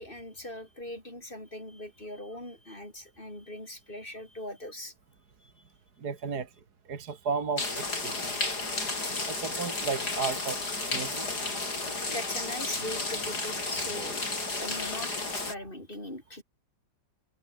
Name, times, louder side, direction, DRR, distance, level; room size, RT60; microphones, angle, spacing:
voice 1, 0.0-4.9 5.4-5.5 12.1-14.2 14.6-16.4, left 1 dB, 25° left, 6.6 m, -40 dB
voice 2, 6.0-6.5 6.9-8.3 9.2-10.6 10.9-11.2 14.0-14.1 14.5-14.6, right 5 dB, 55° right, 2.6 m, -34 dB
sound 1, 7.6-15.5, left 3 dB, 60° left, 5.6 m, -32 dB
omnidirectional pair, 2.0 m